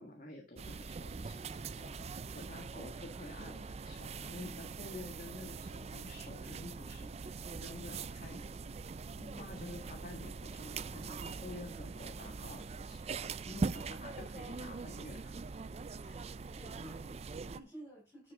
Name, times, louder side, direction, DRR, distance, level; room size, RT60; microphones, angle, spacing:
voice 1, 0.0-13.2 13.5-15.3, left 2 dB, 45° left, 1.7 m, -50 dB
sound 1, 0.6-17.6, right 4 dB, 35° right, 0.4 m, -42 dB
voice 2, 9.0-9.5 13.4-13.6 16.0-18.3, right 1 dB, 15° left, 5.0 m, -53 dB
11.0 x 6.4 x 3.7 m
head